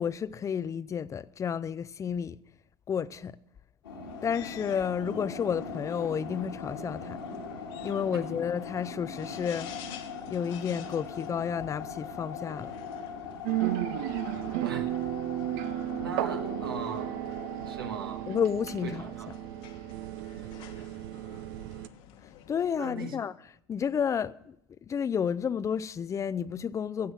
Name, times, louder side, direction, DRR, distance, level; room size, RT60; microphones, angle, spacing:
voice 1, 0.0-2.4 2.9-3.4 4.2-7.2 7.8-9.7 10.3-12.7 18.3-19.0 22.5-23.3 23.7-24.6 24.9-27.1, left 7 dB, 25° left, 0.5 m, -31 dB
sound 1, 3.8-17.9, left 5 dB, 85° left, 2.3 m, -40 dB
sound 2, 4.1-22.7, left 10 dB, 55° left, 1.3 m, -52 dB
sound 3, 13.4-21.9, right 15 dB, 60° right, 0.6 m, -34 dB
voice 2, 16.0-17.1 17.6-18.3 18.8-19.3 20.3-20.9 22.7-23.2, right 5 dB, 85° right, 1.4 m, -39 dB
15.0 x 7.7 x 6.6 m
hypercardioid pair, 75°, 12 cm